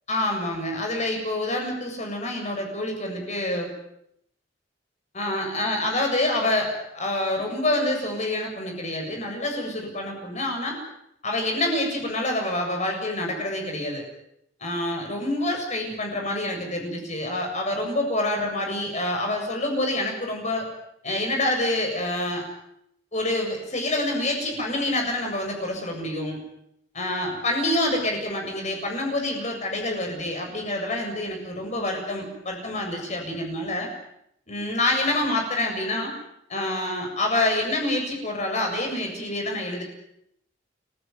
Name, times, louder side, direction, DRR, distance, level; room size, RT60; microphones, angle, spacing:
voice 1, 0.1-3.7 5.1-10.8 11.2-14.0 14.6-20.7 21.0-22.4 23.1-26.4 26.9-33.9 34.5-36.1 36.5-39.8, left 1 dB, 40° left, 2 dB, 7.6 m, -27 dB
29.5 x 16.5 x 9.5 m, 0.77 s
head